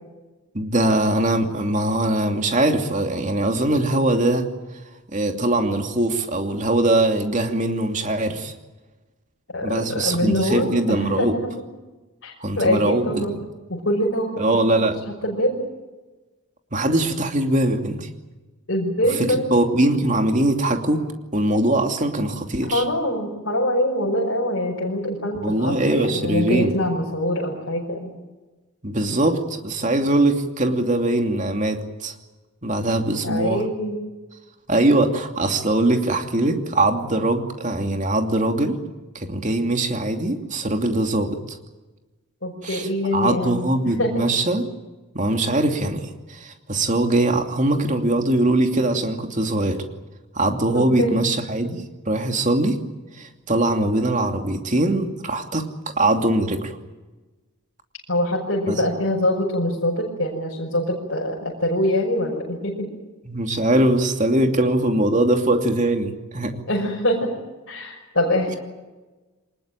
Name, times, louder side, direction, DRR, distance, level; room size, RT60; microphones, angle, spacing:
voice 1, 0.5-4.5 5.1-8.5 9.6-11.4 12.4-13.4 14.4-15.0 16.7-18.1 19.3-22.8 25.4-26.7 28.8-32.1 32.6-33.6 34.7-38.8 39.1-41.6 42.6-44.7 45.1-49.8 50.3-52.8 53.2-56.8 58.7-58.8 63.3-66.6, right 1 dB, 35° right, 4 dB, 2.7 m, -21 dB
voice 2, 9.5-11.5 12.2-13.4 13.7-14.6 15.1-15.5 18.7-19.5 22.6-28.1 33.2-34.0 42.4-43.6 43.8-44.2 50.7-51.2 58.1-62.9 66.7-67.3 67.7-68.6, left 1 dB, 55° left, -2 dB, 5.8 m, -24 dB
25.0 x 20.5 x 9.0 m, 1.2 s
head